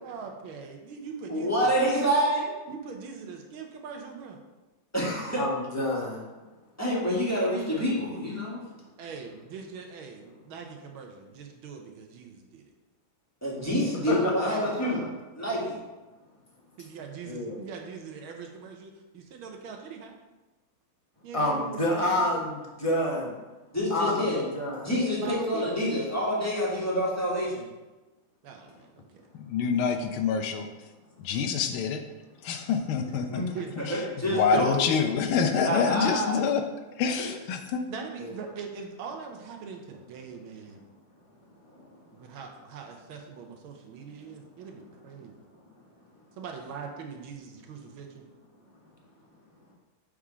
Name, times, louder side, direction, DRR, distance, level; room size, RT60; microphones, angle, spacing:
voice 1, 0.0-2.1 2.7-4.4 9.0-12.6 16.8-20.2 21.2-22.4 25.2-25.7 28.4-29.1 33.5-33.8 37.9-40.8 42.1-45.4 46.4-48.3, right 6 dB, 80° right, 3 dB, 1.7 m, -42 dB
voice 2, 1.3-2.5 4.9-5.4 6.8-8.6 13.4-15.0 15.4-15.8 23.7-24.5 24.8-27.6 33.3-33.4 33.9-34.8 35.6-36.4 37.2-37.3, equal, 10° left, -6 dB, 1.4 m, -27 dB
voice 3, 5.4-6.2 14.1-14.2 14.6-14.9 17.3-17.6 21.3-23.3 23.9-24.2 24.5-24.9 38.2-38.3, left 1 dB, 25° left, -2 dB, 0.7 m, -28 dB
voice 4, 29.3-30.7 31.2-32.0 32.4-33.4 33.8-33.9 34.3-36.6 37.0-37.8, left 6 dB, 85° left, 6 dB, 1.5 m, -26 dB
7.0 x 3.7 x 4.9 m, 1.1 s
omnidirectional pair, 2.2 m